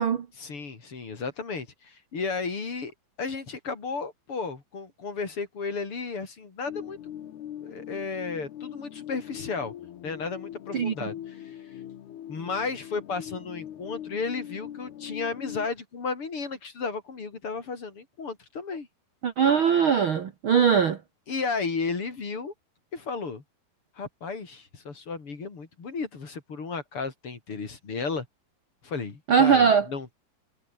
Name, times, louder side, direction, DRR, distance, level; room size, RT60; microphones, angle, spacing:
voice 1, 0.4-2.9 3.2-7.0 7.6-9.7 10.0-11.6 12.3-18.9 21.3-22.5 22.9-23.4 24.0-28.3 28.8-30.2, left 4 dB, 35° left, 4.1 m, -33 dB
sound 1, 6.7-15.7, left 11 dB, 85° left, 3.9 m, -41 dB
voice 2, 10.7-11.1 19.2-21.0 29.3-29.8, right 7 dB, 80° right, 1.1 m, -21 dB
omnidirectional pair, 4.5 m